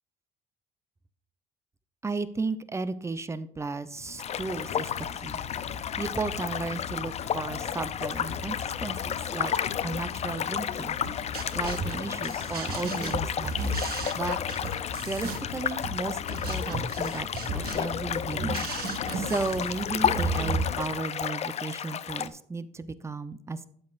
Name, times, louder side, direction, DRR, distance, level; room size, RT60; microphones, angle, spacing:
voice 1, 2.0-5.4 6.0-11.0 11.5-14.4 15.1-17.3 17.5-23.7, right 3 dB, 15° right, 13 dB, 0.7 m, -34 dB
sound 1, 3.9-21.0, left 7 dB, 65° left, 0.9 m, -40 dB
sound 2, 4.2-22.3, left 9 dB, 40° left, 0.5 m, -32 dB
sound 3, 11.0-20.6, right 3 dB, 65° right, 1.5 m, -34 dB
12.0 x 8.4 x 2.5 m, 0.65 s
cardioid pair, 110°, 17 cm